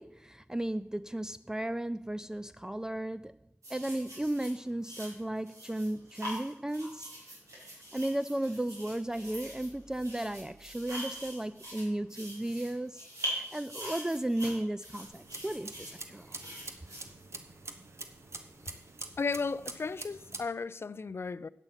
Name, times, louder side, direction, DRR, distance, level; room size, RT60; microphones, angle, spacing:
voice 1, 0.0-3.4 3.7-7.1 7.9-16.4, right 1 dB, 10° right, 0.3 m, -35 dB
sound 1, 3.6-17.7 18.5-18.7, equal, 75° right, 4.7 m, -43 dB
sound 2, 15.0-20.4, right 3 dB, 55° right, 1.1 m, -46 dB
voice 2, 19.2-21.5, left 4 dB, 50° left, 0.4 m, -34 dB
9.1 x 8.0 x 5.6 m
cardioid pair, 40°, 5 cm